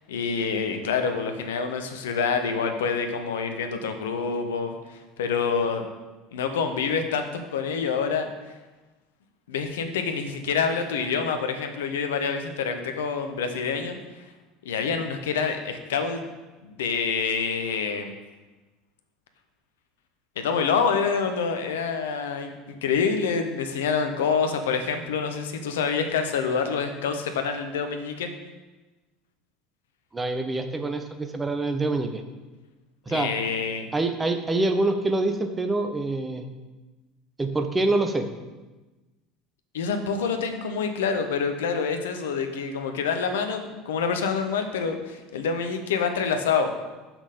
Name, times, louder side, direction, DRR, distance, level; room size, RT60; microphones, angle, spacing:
voice 1, 0.1-5.8 6.3-8.3 9.5-14.2 14.6-16.2 16.6-18.1 20.4-28.3 33.1-33.9 39.7-46.7, left 5 dB, 65° left, 6 dB, 0.8 m, -27 dB
voice 2, 30.1-32.2 33.1-33.3 33.9-36.4 37.4-38.3, right 2 dB, 15° right, 6 dB, 0.8 m, -25 dB
6.2 x 6.0 x 5.2 m, 1.2 s
figure-of-eight pair, 70°, 0 cm